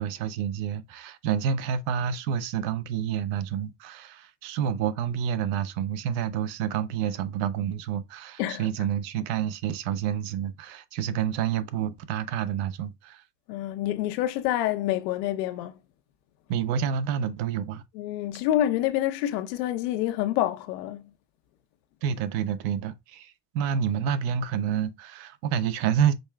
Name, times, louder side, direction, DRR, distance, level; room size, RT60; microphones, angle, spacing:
voice 1, 0.0-13.2 16.5-17.8 22.0-26.1, right 8 dB, 55° right, 0.7 m, -28 dB
voice 2, 13.5-15.7 17.9-21.1, left 13 dB, 90° left, 0.9 m, -27 dB
5.3 x 4.3 x 2.3 m
cardioid pair, 170°, 47 cm